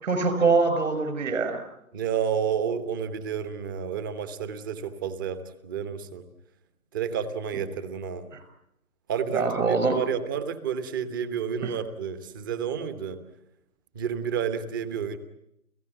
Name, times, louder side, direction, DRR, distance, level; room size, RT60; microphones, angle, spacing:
voice 1, 0.0-1.6 8.3-8.4 9.3-10.0 11.6-11.7, right 4 dB, 55° right, 9 dB, 6.1 m, -24 dB
voice 2, 1.9-6.2 6.9-8.3 9.1-13.2 13.9-15.2, right 7 dB, 15° right, 12 dB, 0.9 m, -30 dB
30.0 x 16.5 x 9.7 m, 0.81 s
figure-of-eight pair, 150°, 45 cm